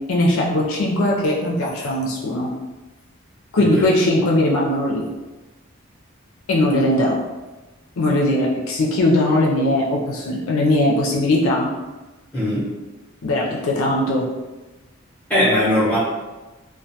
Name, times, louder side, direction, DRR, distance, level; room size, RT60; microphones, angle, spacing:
voice 1, 0.1-2.5 3.5-5.0 6.5-7.2 8.0-11.7 13.2-14.3, left 1 dB, 75° left, -2 dB, 0.4 m, -19 dB
voice 2, 3.6-4.0 12.3-12.7 15.3-16.0, left 1 dB, 5° left, -11 dB, 0.8 m, -20 dB
2.2 x 2.1 x 2.7 m, 1.2 s
head